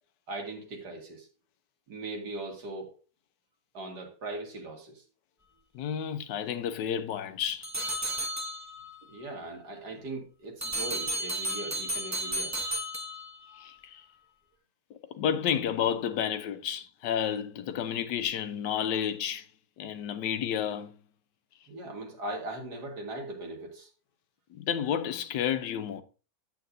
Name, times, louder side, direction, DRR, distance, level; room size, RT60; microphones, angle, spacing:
voice 1, 0.3-1.3 1.9-3.0 3.7-5.0 9.1-12.5 21.7-23.9, right 2 dB, 65° right, 2.3 m, -39 dB
voice 2, 5.7-7.7 13.6-14.0 14.9-19.4 19.8-20.9 24.5-26.0, left 9 dB, 75° left, 1.3 m, -31 dB
sound 1, 7.6-9.0 10.6-13.6, right 1 dB, 15° right, 0.5 m, -33 dB
8.8 x 8.2 x 2.6 m
omnidirectional pair, 1.9 m